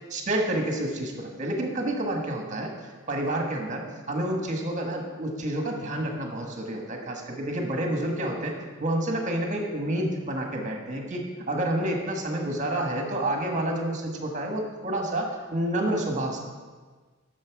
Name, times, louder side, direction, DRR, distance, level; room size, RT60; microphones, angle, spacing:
voice 1, 0.1-2.7 3.1-8.5 8.8-16.4, right 1 dB, 35° right, 1 dB, 1.5 m, -29 dB
12.0 x 6.8 x 4.7 m, 1.4 s
head